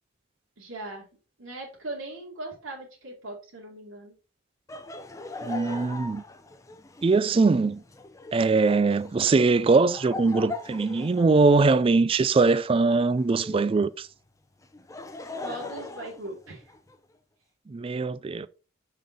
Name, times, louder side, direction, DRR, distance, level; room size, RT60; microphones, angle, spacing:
voice 1, 0.6-1.1 1.4-4.1 15.4-16.6, right 2 dB, 85° right, 2.5 m, -39 dB
Laughter, 4.7-13.7 14.6-17.0, left 3 dB, 15° left, 0.6 m, -41 dB
voice 2, 5.4-6.2 7.0-7.8 8.3-14.1 17.7-18.5, right 3 dB, 30° right, 0.3 m, -22 dB
6.5 x 5.5 x 3.9 m
head